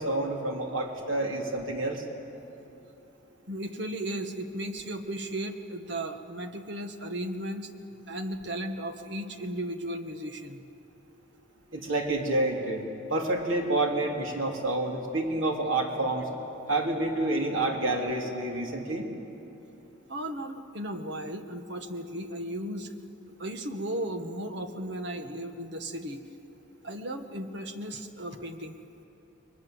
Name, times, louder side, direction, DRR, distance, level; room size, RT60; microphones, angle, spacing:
voice 1, 0.0-2.0 11.7-12.8 13.1-16.3 16.7-19.1, right 2 dB, 85° right, 1 dB, 3.4 m, -28 dB
voice 2, 3.5-7.7 8.1-10.6 20.1-23.0 23.4-26.2 26.8-28.8, right 1 dB, 60° right, 6 dB, 1.7 m, -35 dB
29.5 x 23.0 x 8.1 m, 3.0 s
head